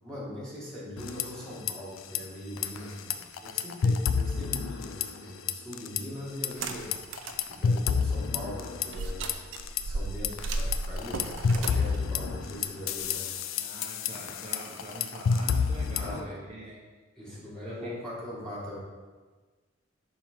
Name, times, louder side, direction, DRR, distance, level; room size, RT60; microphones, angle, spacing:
voice 1, 0.0-13.3 16.0-16.4 16.7-16.8 17.2-18.8, left 1 dB, 5° left, -8 dB, 1.7 m, -41 dB
sound 1, 1.0-1.7 2.0-2.2 2.6-5.2 5.5-6.0 6.4-9.8 10.2-16.2, left 6 dB, 90° left, 0.4 m, -29 dB
sound 2, 6.4-7.4 7.9-8.0 8.9-13.2, right 2 dB, 80° right, 0.5 m, -35 dB
voice 2, 13.5-16.8 17.3-17.4 17.6-17.9, right 1 dB, 35° right, -4 dB, 0.7 m, -43 dB
5.8 x 3.7 x 4.5 m, 1.4 s
head